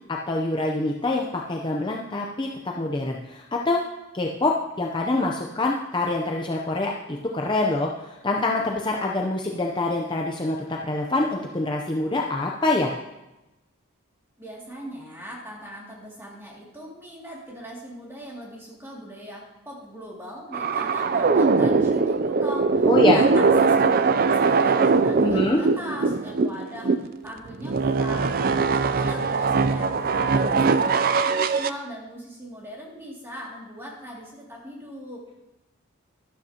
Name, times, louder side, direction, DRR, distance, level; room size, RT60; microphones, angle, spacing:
voice 1, 0.1-3.8 4.1-12.9 22.9-23.2 25.2-25.6, left 2 dB, 20° left, 0 dB, 0.6 m, -25 dB
voice 2, 14.4-35.3, equal, 10° right, -3 dB, 2.4 m, -40 dB
sound 1, 20.5-27.1 27.5-31.7, right 4 dB, 45° right, 0.4 m, -21 dB
12.5 x 11.5 x 2.9 m, 1.0 s
head